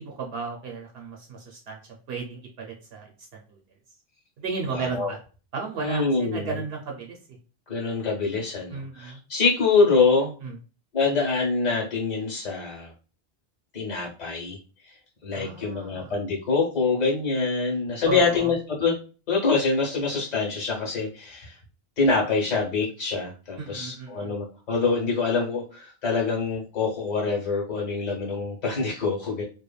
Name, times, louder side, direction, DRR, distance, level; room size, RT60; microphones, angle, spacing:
voice 1, 0.0-1.8 2.1-3.1 3.5-3.6 4.4-5.2 5.5-7.2 8.7-9.2 10.4-10.5 15.3-16.1 18.1-18.5 23.6-24.3, right 4 dB, 75° right, 0 dB, 0.8 m, -34 dB
voice 2, 4.7-5.1 5.8-6.6 7.7-10.3 10.9-12.9 13.7-14.6 15.2-18.9 19.3-21.5 22.0-29.4, left 4 dB, 45° left, -3 dB, 1.0 m, -25 dB
3.1 x 2.2 x 2.2 m, 0.36 s
omnidirectional pair, 1.1 m